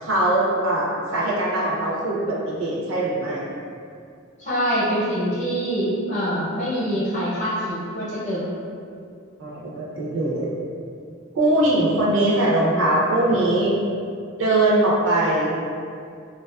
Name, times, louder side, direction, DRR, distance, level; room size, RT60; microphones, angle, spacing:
voice 1, 0.0-3.4 9.4-10.5 11.3-13.7 14.4-15.5, right 1 dB, 70° right, -5 dB, 0.6 m, -21 dB
voice 2, 4.4-8.5, equal, 35° left, -9 dB, 0.8 m, -24 dB
2.5 x 2.4 x 2.3 m, 2.4 s
head